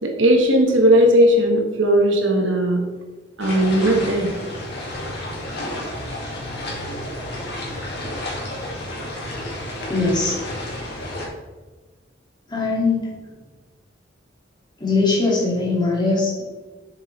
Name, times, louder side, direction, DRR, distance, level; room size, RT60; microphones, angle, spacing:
voice 1, 0.0-2.8 3.4-4.3, equal, 70° right, 2 dB, 1.3 m, -17 dB
sound 1, 3.4-11.3, left 1 dB, 60° left, 2.2 m, -31 dB
voice 2, 9.9-10.4 12.5-13.1 14.8-16.4, left 3 dB, 25° left, -5 dB, 2.4 m, -21 dB
7.2 x 6.9 x 3.3 m, 1.3 s
head